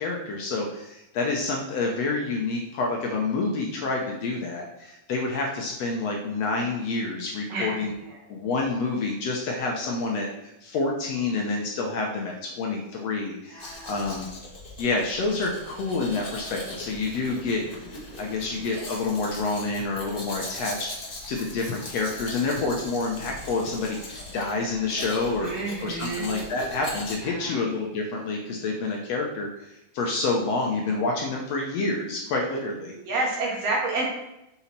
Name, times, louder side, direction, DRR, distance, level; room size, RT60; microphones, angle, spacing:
voice 1, 0.0-7.9 8.3-14.3 14.8-17.6 18.2-20.9 21.3-25.5 25.8-33.0, left 3 dB, 65° left, 0 dB, 1.8 m, -28 dB
voice 2, 7.5-8.2 13.5-14.0 25.4-26.4 27.2-27.6 33.1-34.1, right 2 dB, 55° right, -2 dB, 2.3 m, -30 dB
Domestic sounds home sounds, 13.6-27.2, left 2 dB, 20° left, 1.2 m, -40 dB
7.0 x 5.6 x 4.3 m, 0.88 s
omnidirectional pair, 3.7 m